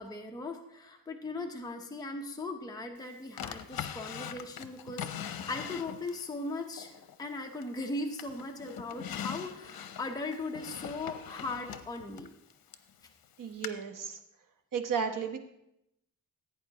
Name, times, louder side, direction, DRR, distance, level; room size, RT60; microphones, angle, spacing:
voice 1, 0.0-12.3, left 2 dB, 10° left, 2 dB, 0.7 m, -39 dB
Drawer open or close, 3.4-6.3 6.8-7.8 8.2-12.9 13.6-13.7, left 9 dB, 85° left, 0.7 m, -41 dB
voice 2, 13.4-14.2 14.7-15.4, right 6 dB, 65° right, 6 dB, 1.1 m, -33 dB
15.5 x 8.8 x 2.9 m, 0.80 s
wide cardioid pair, 140°, 35 cm